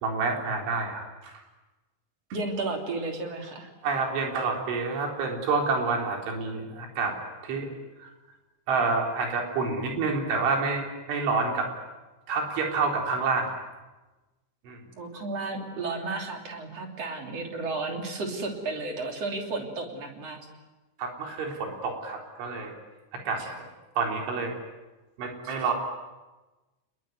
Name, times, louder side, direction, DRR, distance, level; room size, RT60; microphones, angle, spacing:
voice 1, 0.0-1.3 3.8-7.2 7.4-8.1 8.7-11.7 12.3-13.6 14.7-14.8 21.0-22.7 23.1-23.4 24.0-24.6 25.2-25.7, right 4 dB, 75° right, 2 dB, 6.3 m, -28 dB
voice 2, 2.3-3.7 15.0-20.4 23.4-23.5 25.4-25.5, right 3 dB, 35° right, 3 dB, 3.7 m, -33 dB
28.0 x 21.5 x 9.4 m, 1.1 s
omnidirectional pair, 5.5 m